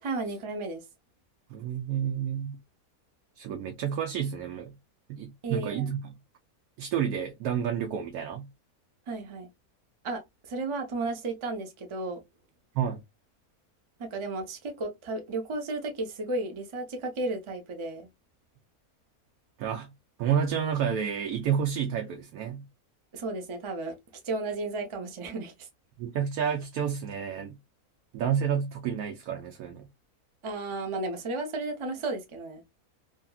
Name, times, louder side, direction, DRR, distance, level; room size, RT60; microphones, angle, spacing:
voice 1, 0.0-0.8 5.4-5.9 9.1-9.5 10.0-10.2 10.5-12.2 14.0-18.1 23.1-23.9 24.2-25.7 30.4-32.6, right 2 dB, 45° right, 0.4 m, -33 dB
voice 2, 1.5-2.6 3.4-4.7 5.1-6.1 6.8-8.5 12.7-13.0 19.6-19.9 20.2-22.6 26.0-27.6 28.1-29.9, right 8 dB, 85° right, 1.1 m, -30 dB
2.7 x 2.6 x 2.2 m
omnidirectional pair, 1.6 m